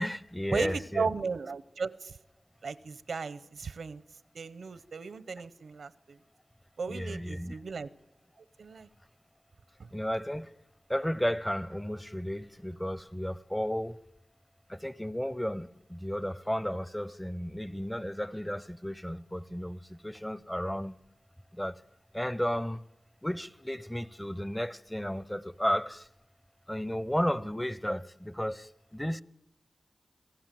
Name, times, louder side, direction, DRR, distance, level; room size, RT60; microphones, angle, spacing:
voice 1, 0.0-1.1 6.9-7.6 9.9-10.5 10.9-14.1 14.7-21.0 21.5-21.8 22.1-22.8 23.2-26.1 26.7-29.2, equal, 10° left, 0.7 m, -33 dB
voice 2, 0.5-2.2 2.6-4.0 4.3-6.2 6.8-7.9 8.6-8.9, right 5 dB, 85° right, 0.8 m, -35 dB
27.5 x 17.0 x 7.6 m
cardioid pair, 60°, 0 cm